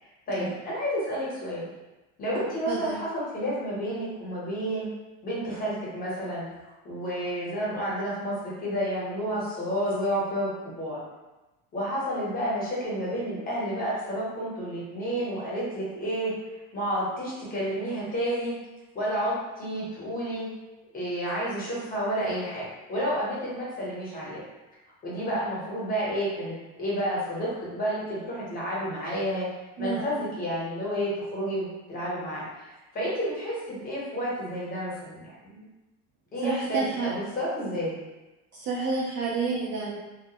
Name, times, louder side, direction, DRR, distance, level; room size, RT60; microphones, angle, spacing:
voice 1, 0.0-1.6 2.2-4.9 5.2-6.4 6.8-11.0 11.7-16.3 16.7-18.5 18.9-20.5 20.9-24.4 25.0-29.5 29.8-35.6 36.3-37.9, equal, 25° left, -7 dB, 0.9 m, -30 dB
voice 2, 2.3-3.0 29.8-30.1 36.4-37.1 38.5-40.0, right 4 dB, 35° right, -5 dB, 0.4 m, -30 dB
2.3 x 2.1 x 2.8 m, 1.1 s
cardioid pair, 145°, 33 cm